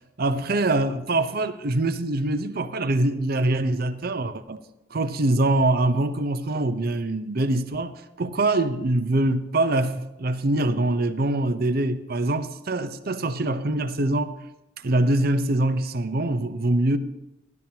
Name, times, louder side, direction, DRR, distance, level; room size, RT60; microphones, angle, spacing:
voice 1, 0.2-4.6 4.9-14.3 14.8-17.0, right 2 dB, 55° right, 0.7 m, -24 dB
14.0 x 12.0 x 2.9 m
head